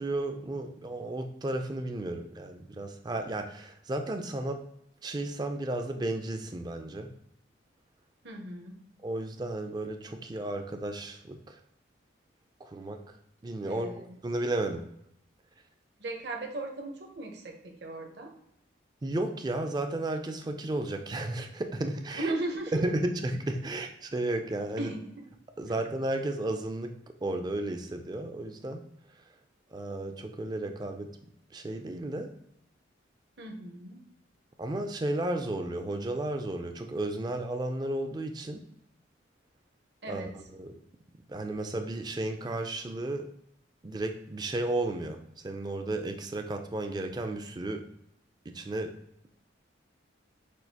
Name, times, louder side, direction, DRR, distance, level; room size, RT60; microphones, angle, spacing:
voice 1, 0.0-4.6 5.0-7.1 9.0-11.6 12.6-13.2 13.4-14.9 19.0-22.3 22.7-24.9 25.6-27.0 27.2-28.8 29.7-31.1 31.5-32.3 34.6-38.6 40.1-40.8 41.3-43.3 43.8-45.2 45.4-47.9 48.5-48.9, right 2 dB, 20° right, 6 dB, 0.3 m, -33 dB
voice 2, 8.2-8.8 13.7-14.2 16.0-18.3 22.1-22.8 24.8-25.2 33.4-34.0 40.0-40.3, right 2 dB, 55° right, 2 dB, 0.8 m, -37 dB
6.1 x 2.4 x 2.7 m, 0.76 s
head